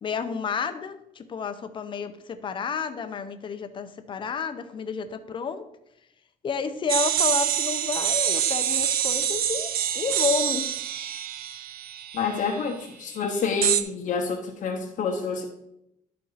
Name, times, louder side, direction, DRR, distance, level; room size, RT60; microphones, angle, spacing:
voice 1, 0.0-5.6 6.4-10.7, left 6 dB, 35° left, 9 dB, 0.6 m, -30 dB
sound 1, 6.9-12.6 13.6-13.8, right 10 dB, 80° right, 0.5 m, -26 dB
voice 2, 12.1-15.4, left 5 dB, 55° left, 0 dB, 1.0 m, -28 dB
11.5 x 4.4 x 4.0 m, 0.82 s
cardioid pair, 150°, 15 cm